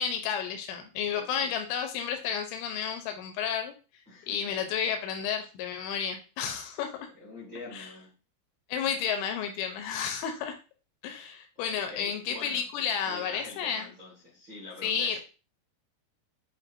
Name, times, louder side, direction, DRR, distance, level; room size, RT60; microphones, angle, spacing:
voice 1, 0.0-3.7 4.3-7.1 7.7-7.9 8.7-10.6 11.0-13.9 14.8-15.2, left 7 dB, 90° left, 3.0 m, -31 dB
voice 2, 1.1-1.5 4.1-4.5 6.5-6.8 7.1-8.2 11.5-12.7 13.0-15.2, left 3 dB, 60° right, 0.9 m, -46 dB
7.5 x 2.7 x 2.6 m
omnidirectional pair, 5.2 m